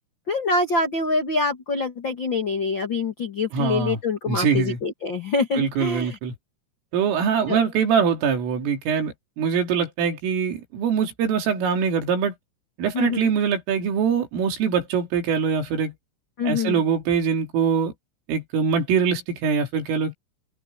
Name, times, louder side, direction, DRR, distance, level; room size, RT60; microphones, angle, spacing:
voice 1, 0.3-6.2 7.5-7.6 12.9-13.3 16.4-16.8, left 3 dB, 90° left, 1.0 m, -25 dB
voice 2, 3.5-4.0 4.3-4.8 5.6-6.3 6.9-12.3 12.8-15.9 16.4-17.9 18.3-20.1, right 6 dB, 80° right, 6.1 m, -23 dB
open air
omnidirectional pair, 5.7 m